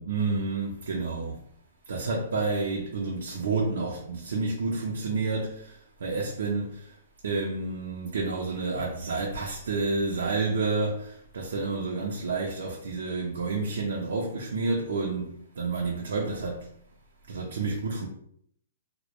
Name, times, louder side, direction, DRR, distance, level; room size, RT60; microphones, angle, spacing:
voice 1, 0.0-1.4 1.9-6.9 7.2-15.3 15.6-16.7 17.3-18.1, right 3 dB, 80° right, 0.5 m, -29 dB
2.1 x 2.1 x 2.9 m
hypercardioid pair, 150°, 0 cm